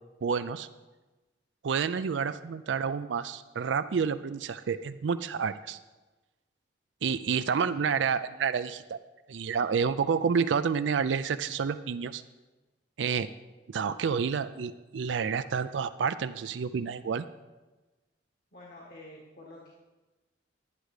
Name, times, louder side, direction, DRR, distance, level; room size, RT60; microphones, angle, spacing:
voice 1, 0.2-0.7 1.6-5.8 7.0-9.0 9.3-12.2 13.0-13.3 13.7-17.2, right 6 dB, 85° right, 11 dB, 0.4 m, -29 dB
voice 2, 7.3-7.7 18.5-19.7, left 1 dB, 55° left, -2 dB, 1.7 m, -49 dB
10.5 x 9.9 x 4.9 m, 1.2 s
head